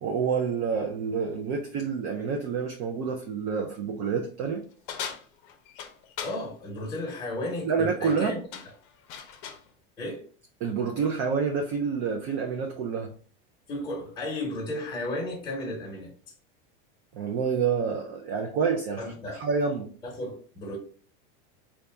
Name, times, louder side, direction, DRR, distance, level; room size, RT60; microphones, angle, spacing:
voice 1, 0.0-4.6 7.6-8.4 10.6-13.1 17.1-19.9, right 5 dB, 30° right, 0.4 m, -28 dB
sound 1, 4.9-6.4 7.9-8.2 8.5-9.7, left 7 dB, 55° left, 0.6 m, -39 dB
voice 2, 6.2-8.4 10.0-10.2 13.7-16.1 19.0-19.4 20.0-20.8, left 1 dB, 15° left, 0.9 m, -34 dB
3.9 x 2.3 x 3.4 m
supercardioid pair, 165°, 30 cm